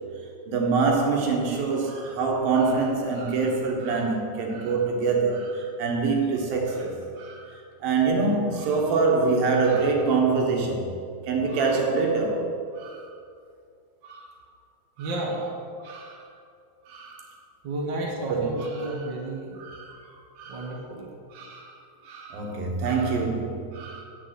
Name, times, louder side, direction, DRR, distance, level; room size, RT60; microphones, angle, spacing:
voice 1, 0.5-10.9 11.2-12.4 12.7-13.0 14.0-14.3 15.0-15.1 15.8-16.2 16.9-17.3 18.3-18.9 19.6-20.0 20.4-20.7 21.3-21.7 22.0-24.0, right 4 dB, 65° right, 0 dB, 2.9 m, -25 dB
voice 2, 15.0-15.4 17.6-19.6 20.4-21.1, right 1 dB, 90° right, -3 dB, 0.9 m, -32 dB
9.2 x 7.6 x 7.9 m, 2.3 s
omnidirectional pair, 5.1 m